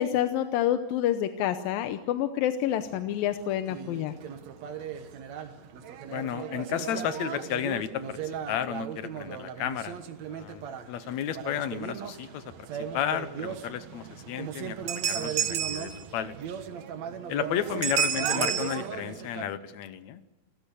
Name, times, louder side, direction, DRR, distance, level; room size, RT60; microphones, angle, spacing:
voice 1, 0.0-4.1, left 11 dB, 85° left, 9 dB, 2.7 m, -28 dB
sound 1, 2.8-19.4, right 8 dB, 60° right, 2.4 m, -34 dB
voice 2, 6.1-8.2 8.5-10.0 10.3-12.7 12.9-16.4 17.3-20.2, left 9 dB, 70° left, 13 dB, 1.9 m, -33 dB
28.5 x 16.0 x 8.5 m, 1.1 s
omnidirectional pair, 4.0 m